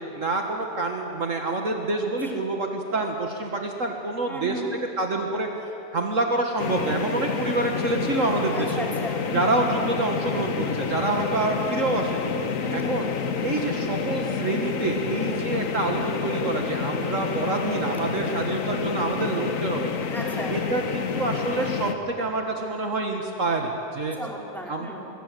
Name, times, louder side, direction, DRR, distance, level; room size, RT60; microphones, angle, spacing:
voice 1, 0.2-4.6 5.0-8.9 9.3-13.1 13.4-19.9 20.5-24.2 24.7-24.9, right 2 dB, 55° right, 2 dB, 2.0 m, -27 dB
voice 2, 4.3-4.7 8.5-9.4 12.6-13.1 20.1-20.6 24.2-25.1, equal, ahead, -2 dB, 3.6 m, -35 dB
sound 1, 6.6-21.9, left 6 dB, 60° left, 1.5 m, -28 dB
24.0 x 22.5 x 7.8 m, 2.8 s
omnidirectional pair, 1.6 m